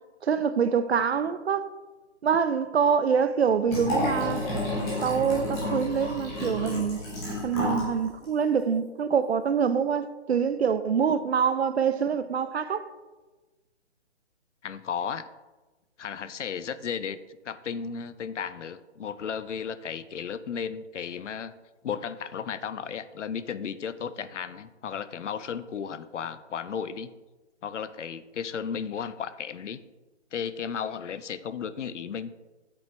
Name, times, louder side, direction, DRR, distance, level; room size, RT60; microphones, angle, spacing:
voice 1, 0.2-1.7 2.2-4.5 5.0-7.0 7.4-12.9, right 6 dB, 60° right, 0.6 m, -25 dB
Liquid, 3.7-7.9 8.2-8.3, left 1 dB, 5° left, 0.8 m, -30 dB
voice 2, 14.6-15.3 16.0-17.2 17.4-21.5 21.8-27.1 27.6-29.8 30.3-32.3, left 7 dB, 80° left, 0.6 m, -34 dB
8.9 x 7.9 x 3.1 m
hypercardioid pair, 165°, 36 cm